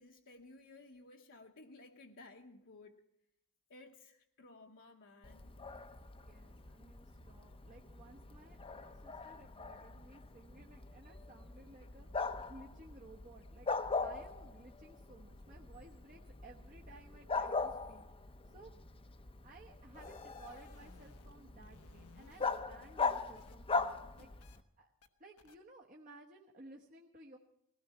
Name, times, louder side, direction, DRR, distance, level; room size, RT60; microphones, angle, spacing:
voice 1, 0.0-3.0 3.7-5.5, left 2 dB, 60° left, 0 dB, 1.1 m, -57 dB
Bark, 5.2-24.6, left 4 dB, 25° left, 0.7 m, -41 dB
voice 2, 6.2-12.1 12.5-13.7 14.0-18.1 18.4-18.7 19.4-24.3 24.8-24.9 25.2-27.4, right 2 dB, 35° right, -1 dB, 1.2 m, -57 dB
sound 1, 19.7-21.4 21.6-23.6 23.9-24.6 25.0-25.1 25.4-25.6, left 4 dB, 85° left, 1.2 m, -62 dB
19.5 x 16.5 x 4.3 m, 0.78 s
head